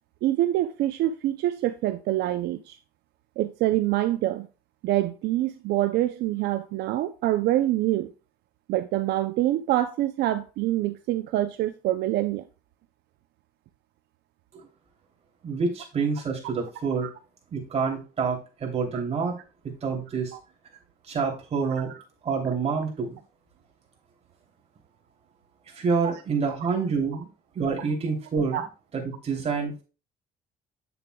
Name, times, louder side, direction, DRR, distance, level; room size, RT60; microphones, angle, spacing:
voice 1, 0.2-2.8 3.4-4.5 4.8-8.1 8.7-12.4 17.0-17.1 28.5-28.7, right 14 dB, 80° right, 0.5 m, -25 dB
voice 2, 15.4-17.1 17.5-19.3 19.6-20.3 21.1-21.9 22.2-23.2 25.7-27.3 27.5-28.6 28.9-29.8, right 5 dB, 40° right, 3.0 m, -27 dB
8.5 x 6.9 x 2.3 m
cardioid pair, 110°, 17 cm